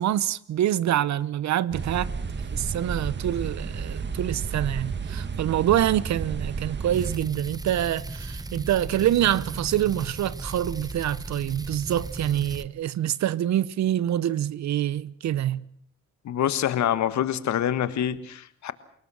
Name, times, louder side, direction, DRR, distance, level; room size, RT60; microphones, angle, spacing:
voice 1, 0.0-2.1 2.5-15.6, right 11 dB, 65° right, 0.9 m, -26 dB
sound 1, 1.7-7.2, right 5 dB, 35° right, 1.8 m, -32 dB
sound 2, 6.9-12.7, right 2 dB, 10° right, 0.9 m, -36 dB
voice 2, 16.2-18.7, left 10 dB, 65° left, 1.5 m, -26 dB
28.5 x 18.5 x 6.3 m
cardioid pair, 90°, 30 cm